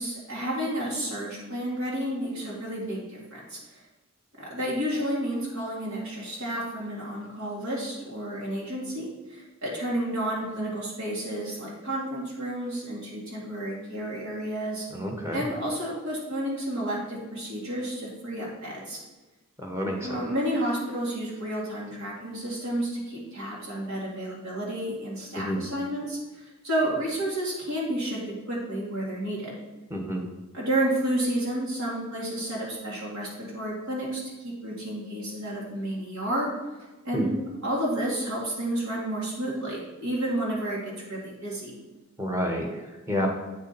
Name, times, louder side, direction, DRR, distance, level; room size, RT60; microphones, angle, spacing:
voice 1, 0.0-3.6 4.4-14.9 15.3-19.0 20.0-29.5 30.5-36.5 37.0-41.8, right 1 dB, 80° right, -5 dB, 2.1 m, -31 dB
voice 2, 14.9-15.4 19.6-20.2 25.4-25.6 29.9-30.2 37.1-37.3 42.2-43.3, equal, 15° right, 0 dB, 1.1 m, -29 dB
8.8 x 4.6 x 4.2 m, 1.2 s
head